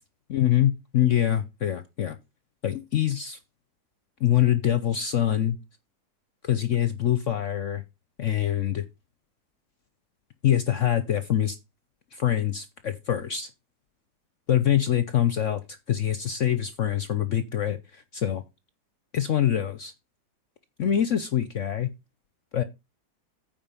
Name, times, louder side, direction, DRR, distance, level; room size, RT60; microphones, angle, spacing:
voice 1, 0.3-2.2 2.6-3.4 4.2-5.6 6.4-7.8 8.2-8.8 10.4-11.6 12.1-13.5 14.5-15.6 15.9-18.4 19.1-19.9 20.8-21.9 22.5-22.6, left 11 dB, 60° left, 0.9 m, -24 dB
9.2 x 4.5 x 6.8 m
omnidirectional pair, 1.9 m